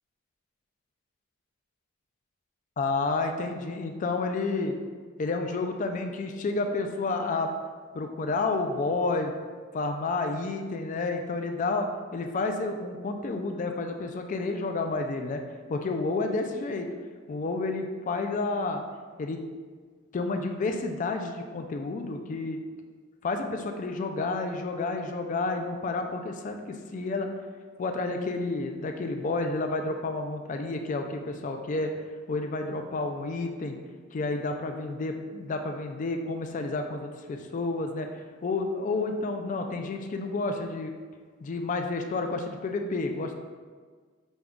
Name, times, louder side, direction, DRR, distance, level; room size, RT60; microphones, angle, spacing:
voice 1, 2.8-4.8 5.2-7.5 7.9-9.3 9.7-15.4 15.7-16.9 17.3-18.8 19.2-19.4 20.1-22.6 23.2-27.3 27.8-33.8 34.1-40.9 41.4-43.3, left 3 dB, 40° left, 5 dB, 0.3 m, -30 dB
5.1 x 2.3 x 3.5 m, 1.6 s
head